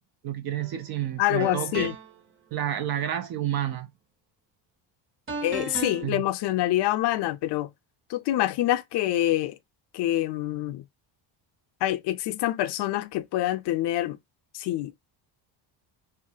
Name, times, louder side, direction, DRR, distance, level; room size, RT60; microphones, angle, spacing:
voice 1, 0.2-1.9 2.5-3.9 6.0-6.3, right 10 dB, 50° right, 0.5 m, -30 dB
sound 1, 0.6-0.8 1.4-2.2 5.3-6.0, right 4 dB, 25° right, 0.9 m, -35 dB
voice 2, 1.2-2.0 5.4-7.7 8.1-9.6 9.9-10.8 11.8-14.2 14.5-15.0, left 14 dB, 60° left, 0.5 m, -26 dB
2.4 x 2.2 x 2.7 m
cardioid pair, 100°, 48 cm